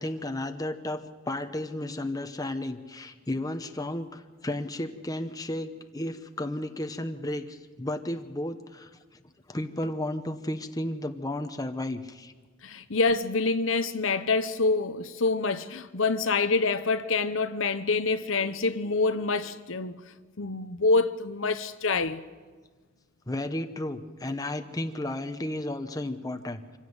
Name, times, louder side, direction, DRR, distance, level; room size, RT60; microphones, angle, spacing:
voice 1, 0.0-8.9 9.5-12.3 23.3-26.8, left 1 dB, 20° left, 1.1 m, -33 dB
voice 2, 12.6-20.0 20.4-22.2, left 3 dB, 75° left, 0.9 m, -26 dB
25.5 x 16.5 x 8.0 m
head